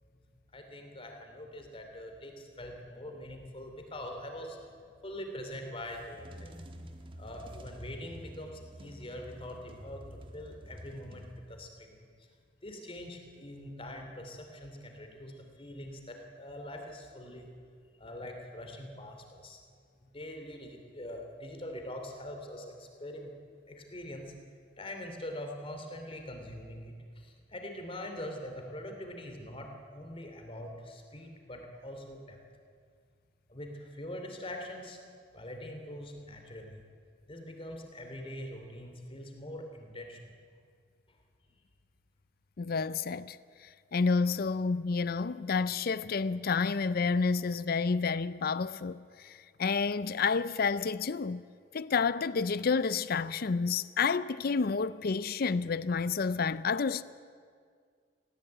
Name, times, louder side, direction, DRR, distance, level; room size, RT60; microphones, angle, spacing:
voice 1, 0.5-4.6 5.0-6.5 7.2-12.1 12.6-17.5 18.0-19.6 20.0-23.3 23.7-24.3 24.8-32.4 33.5-35.0 35.3-36.8 37.3-40.3, left 1 dB, 30° left, 2.9 m, -43 dB
sound 1, 5.8-11.8, equal, 30° right, 1.4 m, -48 dB
voice 2, 42.6-43.4 43.9-51.4 51.7-57.0, left 5 dB, 55° left, 0.5 m, -29 dB
18.5 x 15.5 x 8.9 m
head